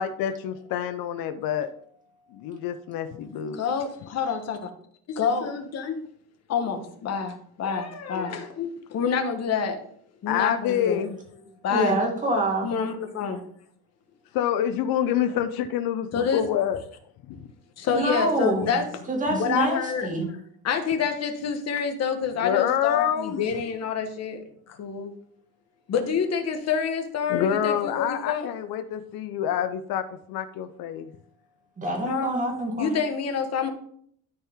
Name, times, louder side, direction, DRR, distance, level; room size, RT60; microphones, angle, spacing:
voice 1, 0.0-1.7 2.3-3.6 10.3-11.2 14.3-16.8 17.3-17.4 22.4-23.4 27.3-30.0 30.3-31.1, left 10 dB, 70° left, 8 dB, 0.7 m, -27 dB
voice 2, 3.3-4.6 5.2-6.0 6.5-9.8 10.2-11.0 11.6-12.0 12.6-13.4 16.1-16.4 17.3-17.4 17.8-18.8 19.3-20.1 20.6-25.1 25.9-28.5 32.1-32.3 32.8-33.7, left 6 dB, 45° left, 5 dB, 1.3 m, -27 dB
voice 3, 11.7-12.7 17.9-18.8 19.1-20.3 31.8-32.9, right 1 dB, 20° right, 1 dB, 2.1 m, -26 dB
12.5 x 4.5 x 3.6 m, 0.63 s
cardioid pair, 160°, 37 cm